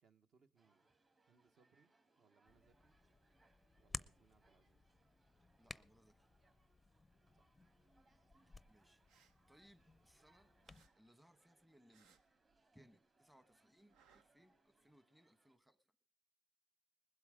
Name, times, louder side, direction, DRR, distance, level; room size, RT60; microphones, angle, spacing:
voice 1, 0.0-0.9 1.2-3.0 3.8-4.9 7.3-7.5, right 5 dB, 50° right, 1.3 m, -75 dB
sound 1, 0.6-15.6, right 2 dB, 30° right, 2.8 m, -77 dB
Hands, 2.5-10.9, left 3 dB, 15° left, 0.6 m, -56 dB
voice 2, 5.6-6.3 8.7-9.2 9.5-10.5 11.0-12.2 12.7-15.9, equal, 5° right, 1.1 m, -69 dB
sound 2, 9.1-10.3 10.6-13.0 13.3-14.9, right 7 dB, 80° right, 1.0 m, -74 dB
20.5 x 8.1 x 5.0 m
cardioid pair, 125°, 0 cm